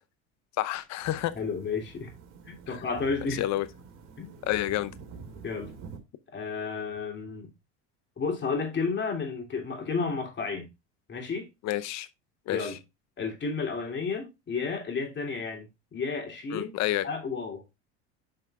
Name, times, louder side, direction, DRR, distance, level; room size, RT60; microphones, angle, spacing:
voice 1, 0.6-1.4 2.7-2.8 3.3-3.7 4.4-4.9 11.6-12.1 12.5-12.8 16.5-17.1, left 14 dB, 50° left, 0.8 m, -29 dB
sound 1, 1.0-6.0, right 5 dB, 50° right, 2.5 m, -47 dB
voice 2, 1.3-2.1 2.5-3.4 4.2-4.3 5.4-5.7 6.3-7.5 8.2-10.7 11.1-11.5 12.5-12.8 13.2-16.7 17.0-17.6, left 4 dB, 30° left, 3.2 m, -32 dB
10.0 x 5.7 x 2.4 m
supercardioid pair, 95°, 35 cm